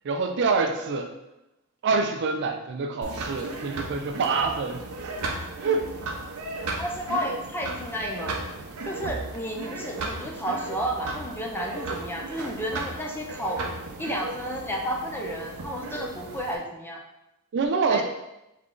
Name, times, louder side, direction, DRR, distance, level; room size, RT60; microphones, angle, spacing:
voice 1, 0.0-1.1 1.8-5.1 5.6-5.9 17.5-18.0, right 4 dB, 55° right, 6 dB, 0.4 m, -26 dB
sound 1, 3.0-16.6, right 3 dB, 85° right, 0.7 m, -35 dB
voice 2, 6.8-8.4 8.9-13.6 14.0-17.0 17.9-18.0, equal, 10° left, 0 dB, 0.5 m, -32 dB
3.7 x 3.1 x 3.7 m, 0.91 s
head